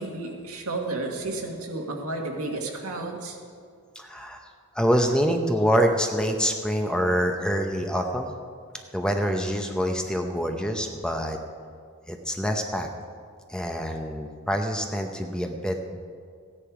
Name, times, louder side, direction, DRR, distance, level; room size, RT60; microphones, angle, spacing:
voice 1, 0.0-3.4, right 2 dB, 80° right, 1 dB, 1.8 m, -32 dB
voice 2, 4.0-8.3 8.9-11.4 12.1-12.9 13.5-16.0, equal, 5° left, 4 dB, 0.7 m, -26 dB
15.0 x 10.0 x 4.8 m, 2.2 s
head